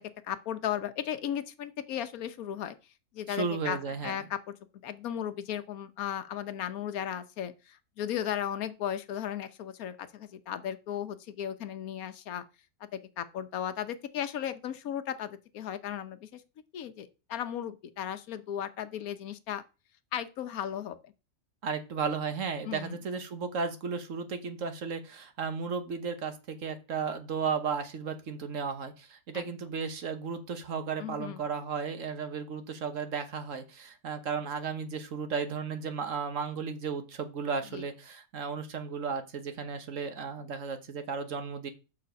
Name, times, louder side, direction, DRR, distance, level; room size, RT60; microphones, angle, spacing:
voice 1, 0.0-2.8 3.1-4.4 4.8-12.4 12.8-16.4 16.7-19.6 20.1-21.1 22.6-23.0 29.3-29.4 31.0-31.4 37.7-37.8, left 10 dB, 80° left, 1.2 m, -36 dB
voice 2, 3.3-4.2 21.6-41.7, right 5 dB, 65° right, 1.4 m, -34 dB
6.9 x 6.3 x 5.1 m
omnidirectional pair, 1.5 m